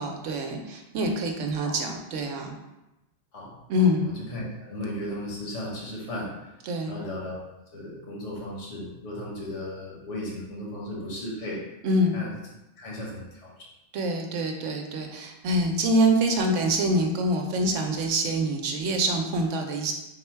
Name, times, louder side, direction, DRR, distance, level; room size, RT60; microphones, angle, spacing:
voice 1, 0.0-2.5 3.7-4.1 6.6-7.0 11.8-12.2 13.9-19.9, right 1 dB, 90° right, 3 dB, 1.0 m, -25 dB
voice 2, 3.8-6.3 6.9-7.4 7.7-11.7 12.1-12.3 12.8-13.5, left 1 dB, 75° left, -4 dB, 1.4 m, -35 dB
3.9 x 2.2 x 4.4 m, 0.97 s
omnidirectional pair, 1.2 m